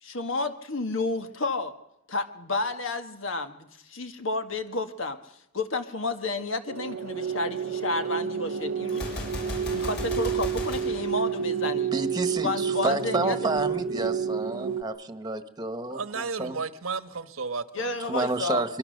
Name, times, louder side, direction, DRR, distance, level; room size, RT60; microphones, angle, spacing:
voice 1, 0.0-1.7 2.1-5.2 5.5-9.1 9.7-11.9 12.4-13.4 17.7-18.6, left 3 dB, 70° left, 7 dB, 1.7 m, -31 dB
sound 1, 6.7-14.8, right 7 dB, 65° right, 0.8 m, -30 dB
Gunshot gunfire, 8.9-12.0, left 1 dB, 50° left, 6.9 m, -36 dB
voice 2, 11.9-16.6 18.0-18.8, right 2 dB, 20° right, 10 dB, 1.3 m, -30 dB
voice 3, 15.9-18.1, right 4 dB, 85° right, 11 dB, 1.3 m, -33 dB
24.0 x 23.0 x 6.6 m, 0.82 s
head